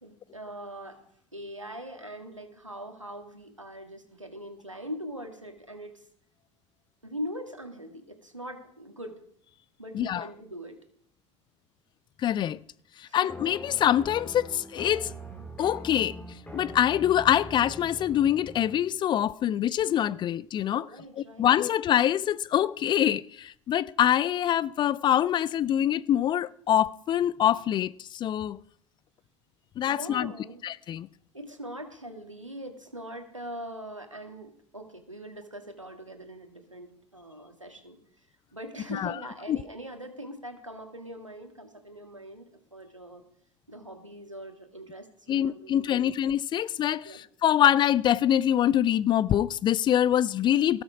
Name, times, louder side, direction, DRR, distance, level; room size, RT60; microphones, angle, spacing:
voice 1, 0.0-1.0 1.3-6.1 7.0-9.2 9.8-10.8 13.0-13.2 20.8-21.5 29.9-30.6 31.3-38.0 38.5-43.2 43.7-46.0 47.0-47.2, equal, 90° right, 1.8 m, -42 dB
voice 2, 9.9-10.3 12.2-12.6 13.0-15.1 15.6-16.2 16.5-20.9 21.2-28.6 29.8-30.3 30.6-31.1 38.9-39.2 39.5-39.6 45.3-50.8, left 11 dB, 30° left, 0.4 m, -25 dB
sound 1, 13.3-18.8, right 1 dB, 10° left, 4.4 m, -42 dB
18.0 x 7.2 x 4.8 m
figure-of-eight pair, 70°, 16 cm